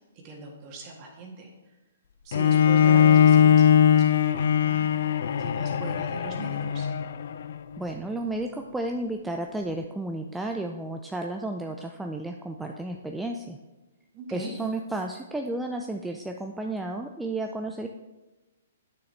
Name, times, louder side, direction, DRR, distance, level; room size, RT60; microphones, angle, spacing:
voice 1, 0.2-1.5 2.2-5.0 5.4-6.9 14.1-14.5, right 4 dB, 35° right, 1 dB, 1.7 m, -40 dB
Bowed string instrument, 2.3-7.5, left 8 dB, 60° left, 0.4 m, -20 dB
voice 2, 7.8-13.6 14.3-17.9, right 2 dB, 5° right, 3 dB, 0.4 m, -32 dB
9.2 x 6.5 x 3.3 m, 1.1 s
figure-of-eight pair, 120°, 0 cm